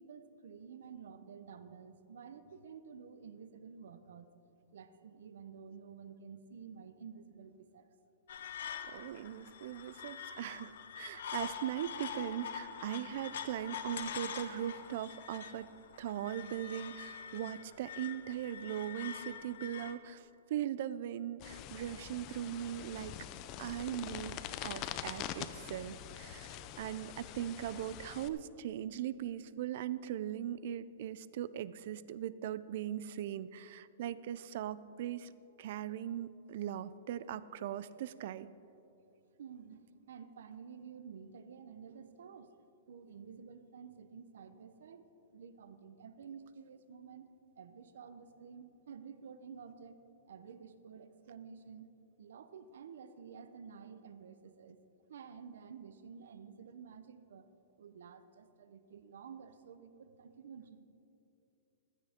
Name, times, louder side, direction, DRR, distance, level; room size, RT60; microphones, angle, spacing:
voice 1, 0.0-4.3 4.7-7.8 8.6-8.7 39.4-42.6 42.9-45.1 45.3-47.3 47.5-50.0 50.3-51.9 52.2-54.8 55.1-57.5 57.8-60.8, right 6 dB, 80° right, 11 dB, 0.8 m, -51 dB
sound 1, 8.3-19.9, left 7 dB, 70° left, 0.9 m, -45 dB
voice 2, 8.8-15.7 16.0-23.2 23.6-35.3 35.6-38.5, right 11 dB, 55° right, 17 dB, 0.4 m, -40 dB
sound 2, 21.4-28.3, left 11 dB, 30° left, 0.5 m, -44 dB
15.5 x 13.0 x 3.6 m, 2.9 s
hypercardioid pair, 160°, 0 cm